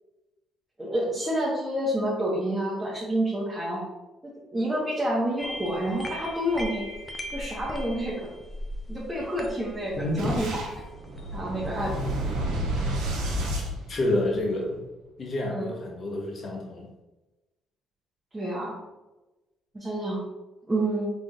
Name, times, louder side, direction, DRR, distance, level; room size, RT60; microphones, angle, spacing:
voice 1, 0.8-3.8 4.2-6.8 7.3-8.2 8.9-10.8 11.3-11.9 15.5-15.7 18.3-18.8 19.7-20.2 20.7-21.1, right 1 dB, 15° right, -6 dB, 1.2 m, -28 dB
sound 1, 5.4-12.0, left 1 dB, 20° left, 0.6 m, -39 dB
voice 2, 10.0-10.4 13.9-14.7 15.2-16.9, left 1 dB, 45° left, 0 dB, 1.1 m, -28 dB
Boom, 10.2-14.6, right 1 dB, 90° right, 1.0 m, -30 dB
4.1 x 3.7 x 2.5 m, 1.1 s
cardioid pair, 80°, 0 cm